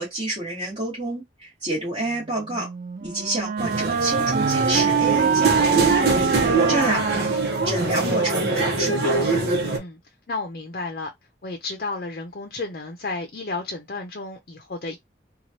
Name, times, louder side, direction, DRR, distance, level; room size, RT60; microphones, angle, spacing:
voice 1, 0.0-2.7 3.0-6.2 6.7-7.0 7.6-9.2, right 2 dB, 30° right, 1.3 m, -28 dB
Wind instrument woodwind instrument, 2.5-8.3, right 6 dB, 45° right, 0.3 m, -25 dB
sound 1, 3.6-9.8, right 3 dB, 65° right, 0.9 m, -23 dB
voice 2, 9.6-10.0 10.3-11.1 11.4-15.0, left 3 dB, 55° left, 0.6 m, -32 dB
3.0 x 2.4 x 2.8 m
head